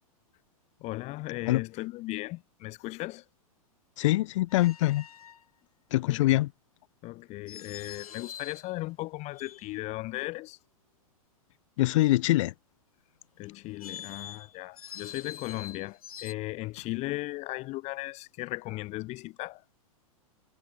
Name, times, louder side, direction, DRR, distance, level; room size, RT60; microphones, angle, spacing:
voice 1, 0.8-3.2 6.0-6.4 7.0-10.6 13.4-19.6, left 20 dB, 35° left, 2.1 m, -37 dB
voice 2, 4.0-5.1 5.9-6.5 11.8-12.5, left 17 dB, 55° left, 2.5 m, -24 dB
sound 1, 4.5-5.4 7.5-8.7 9.3-10.0 13.6-16.3, left 9 dB, 75° left, 5.4 m, -45 dB
hypercardioid pair, 120°, 19 cm